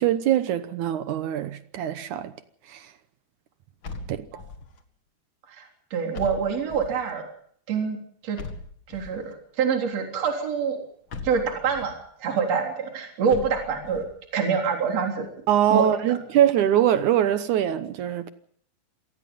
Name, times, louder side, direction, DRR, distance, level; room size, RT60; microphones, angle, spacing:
voice 1, 0.0-2.3 2.7-2.9 4.1-4.3 15.5-18.3, right 10 dB, 70° right, 1.9 m, -23 dB
sound 1, 3.8-4.8 6.1-7.1 8.4-9.3 11.1-12.0 13.3-14.1, left 4 dB, 40° left, 1.9 m, -39 dB
voice 2, 5.5-7.3 7.7-8.0 8.2-8.4 8.9-10.8 11.2-14.1 14.3-15.3 15.7-16.2, right 6 dB, 40° right, 4.6 m, -26 dB
26.5 x 19.0 x 5.5 m
omnidirectional pair, 4.6 m